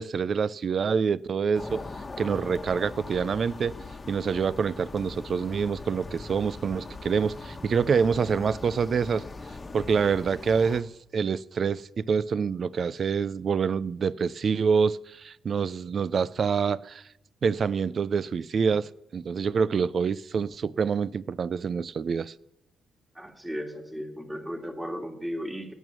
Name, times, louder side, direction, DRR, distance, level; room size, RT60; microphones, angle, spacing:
voice 1, 0.0-1.8 2.2-3.7 4.1-9.2 9.7-17.0 17.4-22.3, right 6 dB, 50° right, 0.4 m, -26 dB
sound 1, 1.5-10.8, left 3 dB, 25° left, 1.2 m, -41 dB
voice 2, 23.1-25.7, equal, 10° right, 2.3 m, -35 dB
18.5 x 9.1 x 6.2 m
cardioid pair, 90°, 0 cm